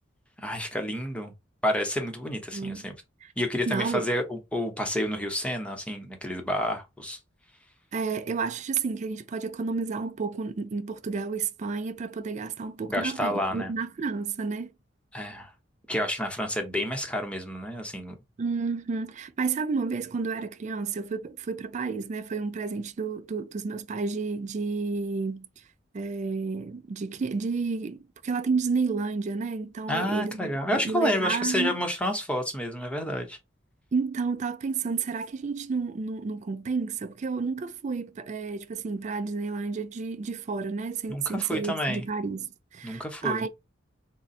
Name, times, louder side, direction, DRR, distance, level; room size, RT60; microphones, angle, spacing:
voice 1, 0.4-1.3 1.6-2.9 3.4-7.2 12.9-13.7 15.1-15.5 15.9-18.2 29.9-33.4 41.1-42.0 42.8-43.5, equal, 5° left, 0.8 m, -29 dB
voice 2, 2.5-2.8 3.2-3.3 3.7-4.1 7.9-14.7 18.4-25.5 25.9-31.8 33.9-43.5, right 4 dB, 40° right, 0.3 m, -31 dB
3.7 x 2.1 x 4.1 m
head